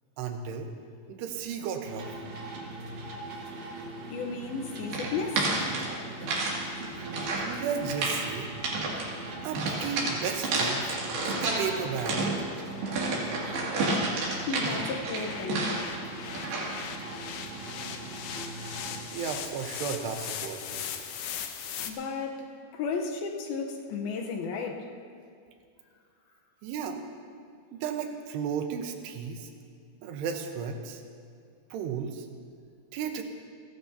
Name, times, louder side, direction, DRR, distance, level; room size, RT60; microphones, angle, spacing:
voice 1, 0.2-0.7 1.1-2.1 6.8-8.5 9.4-12.3 19.1-21.1 26.6-27.0 27.7-29.5 30.0-31.0 31.7-32.3 32.9-33.2, right 7 dB, 90° right, 5 dB, 3.1 m, -34 dB
sound 1, 1.8-19.1, right 2 dB, 55° right, 2.2 m, -41 dB
voice 2, 4.1-5.5 14.5-15.8 21.9-24.9, left 5 dB, 75° left, 2 dB, 2.7 m, -34 dB
sound 2, 4.9-6.6 6.8-7.5 7.8-8.2 8.6-9.1 9.5-11.7 12.0-16.0 16.3-16.8, right 2 dB, 70° right, 4.3 m, -30 dB
sound 3, 6.8-21.9, left 8 dB, 90° left, 1.7 m, -41 dB
29.5 x 12.0 x 2.8 m, 2.3 s
omnidirectional pair, 4.7 m